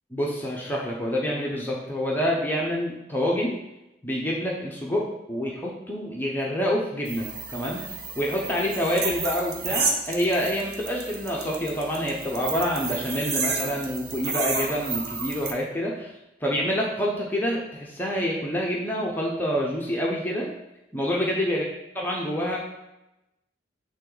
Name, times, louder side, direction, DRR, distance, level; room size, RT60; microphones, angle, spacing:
voice 1, 0.1-3.6 4.0-7.8 8.2-16.1 16.4-20.5 20.9-21.6 22.0-22.6, equal, 10° left, -3 dB, 0.8 m, -27 dB
sound 1, 7.0-15.5, right 4 dB, 60° right, 0.9 m, -31 dB
8.7 x 3.7 x 4.0 m, 0.93 s
head